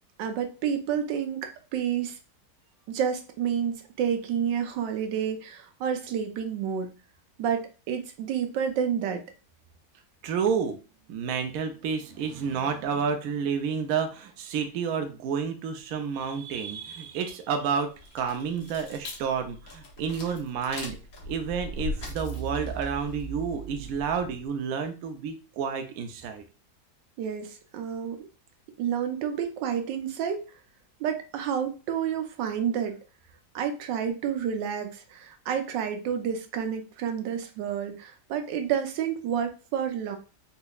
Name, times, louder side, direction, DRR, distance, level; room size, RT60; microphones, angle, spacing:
voice 1, 0.2-2.2 2.9-6.9 7.4-9.2 27.2-28.3 28.8-30.4 31.0-33.0 33.5-40.2, right 8 dB, 85° right, 6 dB, 1.3 m, -29 dB
voice 2, 10.2-10.8 11.1-21.0 21.3-26.4, right 6 dB, 65° right, 5 dB, 1.0 m, -30 dB
sound 1, 17.9-24.5, right 1 dB, 60° left, 1.3 m, -38 dB
4.2 x 2.8 x 2.3 m, 0.33 s
omnidirectional pair, 1.9 m